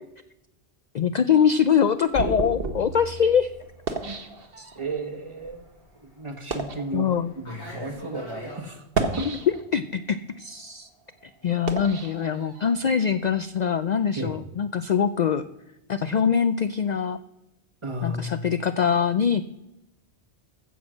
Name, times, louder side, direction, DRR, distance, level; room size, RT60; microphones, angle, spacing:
voice 1, 0.9-3.5 4.6-4.7 6.9-7.3 9.2-10.9 11.2-15.4 15.9-17.2 18.0-19.4, left 7 dB, 55° left, 12 dB, 0.5 m, -23 dB
sound 1, 1.3-5.0 5.7-5.8 6.3-6.9 7.7-7.8 8.8-9.9 10.4-12.9, right 3 dB, 60° right, 1.4 m, -32 dB
Fixed-wing aircraft airplane, 2.1-8.6, equal, 85° left, 4.9 m, -46 dB
voice 2, 4.7-5.6 6.0-7.1 7.4-9.3 14.2-14.4 17.8-18.5, right 1 dB, 30° right, 5 dB, 1.2 m, -33 dB
15.0 x 6.2 x 6.2 m, 0.91 s
omnidirectional pair, 1.1 m